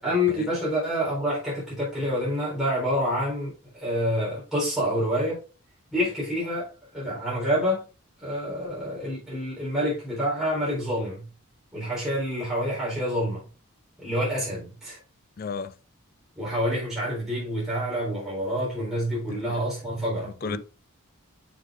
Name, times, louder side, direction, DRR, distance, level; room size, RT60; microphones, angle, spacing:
voice 1, 0.0-5.4 5.9-7.9 8.2-11.3 11.7-13.5 14.0-15.0 16.4-20.6, equal, ahead, 4.1 m, -27 dB
voice 2, 15.4-15.7 19.3-19.6 20.4-20.6, left 5 dB, 40° left, 0.3 m, -33 dB
7.5 x 6.1 x 2.6 m
head